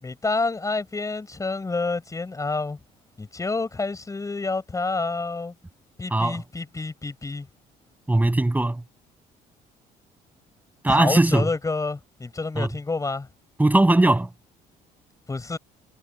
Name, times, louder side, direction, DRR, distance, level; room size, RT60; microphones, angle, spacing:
voice 1, 0.0-2.8 3.2-5.5 6.0-7.5 10.9-13.3 15.3-15.6, left 3 dB, 20° left, 4.6 m, -28 dB
voice 2, 6.1-6.4 8.1-8.8 10.8-11.5 12.6-12.7 13.6-14.3, right 2 dB, 10° right, 6.5 m, -19 dB
cardioid pair, 110°, 17 cm